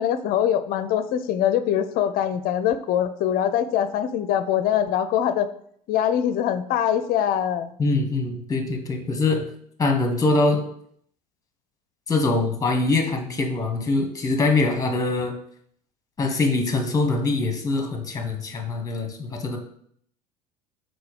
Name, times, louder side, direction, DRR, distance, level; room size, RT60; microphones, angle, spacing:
voice 1, 0.0-5.5 5.9-7.7, left 10 dB, 45° left, 11 dB, 0.6 m, -23 dB
voice 2, 7.8-9.5 9.8-10.6 12.1-15.3 16.2-19.6, left 3 dB, 15° left, 4 dB, 1.3 m, -23 dB
4.7 x 3.9 x 5.0 m, 0.66 s
figure-of-eight pair, 70°, 20 cm